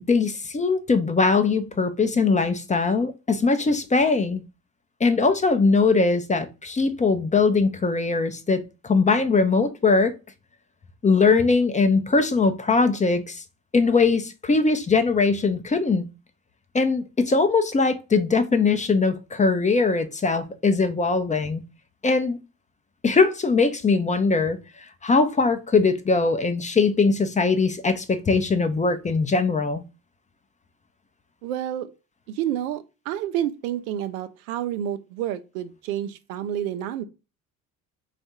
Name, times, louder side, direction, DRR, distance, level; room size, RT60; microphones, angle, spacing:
voice 1, 0.1-4.4 5.0-10.1 11.0-13.4 13.7-16.1 16.7-21.6 22.0-22.4 23.0-24.6 25.0-29.8, left 4 dB, 20° left, 0.5 m, -21 dB
voice 2, 31.4-31.9 32.3-37.0, right 11 dB, 85° right, 0.5 m, -29 dB
3.5 x 2.4 x 4.2 m
hypercardioid pair, 60°, 41 cm